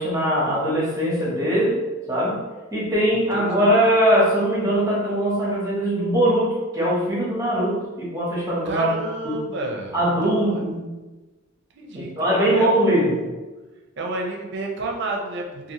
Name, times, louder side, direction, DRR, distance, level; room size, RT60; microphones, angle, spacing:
voice 1, 0.0-1.8 2.1-2.4 2.7-8.9 9.2-9.4 9.9-10.8 11.9-13.2, equal, 15° right, -6 dB, 0.8 m, -21 dB
voice 2, 3.1-3.8 8.6-10.0 10.2-10.6 11.7-13.4 14.0-15.7, right 2 dB, 55° right, 1 dB, 0.5 m, -31 dB
2.8 x 2.5 x 2.8 m, 1.2 s
head